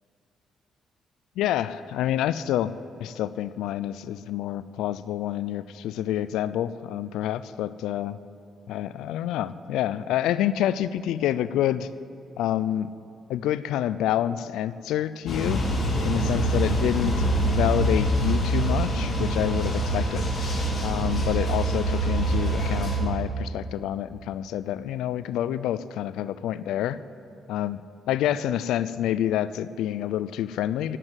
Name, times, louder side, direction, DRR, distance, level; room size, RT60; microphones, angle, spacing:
voice 1, 1.4-2.7 3.0-8.2 8.7-11.9 12.4-12.9 13.3-15.6 16.0-20.3 20.8-27.0 27.5-27.8 28.1-31.0, left 11 dB, 90° left, 15 dB, 0.5 m, -27 dB
sound 1, 15.3-23.0, right 1 dB, 40° left, 4.5 m, -25 dB
17.5 x 9.2 x 8.1 m, 2.7 s
cardioid pair, 90°, 0 cm